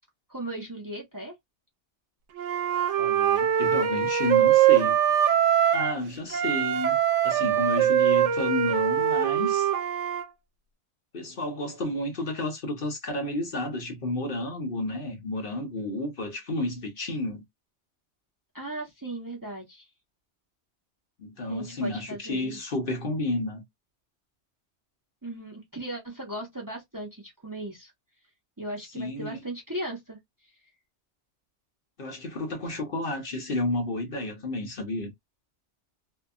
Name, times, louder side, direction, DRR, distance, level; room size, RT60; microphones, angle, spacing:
voice 1, 0.3-1.3 18.5-19.9 21.5-22.6 25.2-27.9 28.6-30.2, right 1 dB, 20° right, 0.8 m, -37 dB
Wind instrument woodwind instrument, 2.4-6.0 6.3-10.3, right 10 dB, 90° right, 0.9 m, -23 dB
voice 2, 3.0-5.0 5.7-7.0 7.2-9.7 11.1-17.4 21.2-23.6 28.9-29.4 32.0-35.1, left 1 dB, 55° left, 0.9 m, -31 dB
2.7 x 2.5 x 2.3 m
omnidirectional pair, 1.2 m